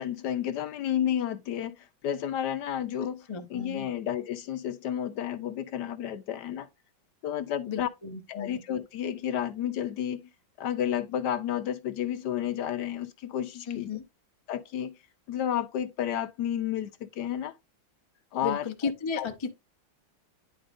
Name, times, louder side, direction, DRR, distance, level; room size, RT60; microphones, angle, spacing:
voice 1, 0.0-3.2 3.5-6.7 7.2-7.9 8.3-10.2 10.6-13.9 14.5-14.9 15.3-17.5 18.3-18.6 19.2-19.3, left 10 dB, 70° left, 1.1 m, -31 dB
voice 2, 3.3-3.9 7.7-8.6 13.7-14.0 18.4-19.5, left 5 dB, 30° left, 0.5 m, -34 dB
10.0 x 4.9 x 2.5 m
omnidirectional pair, 2.1 m